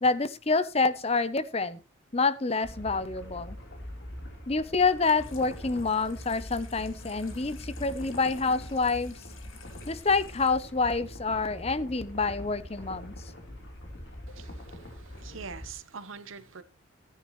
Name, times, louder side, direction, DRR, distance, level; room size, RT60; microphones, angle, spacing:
voice 1, 0.0-1.8 2.1-3.6 4.5-9.1 9.9-13.1, left 4 dB, 30° left, 0.7 m, -27 dB
sound 1, 2.6-15.7, left 1 dB, 55° left, 3.6 m, -43 dB
Water tap faucet / Sink (filling or washing), 4.8-11.8, left 5 dB, 75° left, 1.9 m, -53 dB
voice 2, 14.3-16.6, right 5 dB, 70° right, 1.0 m, -44 dB
15.0 x 10.0 x 3.1 m
head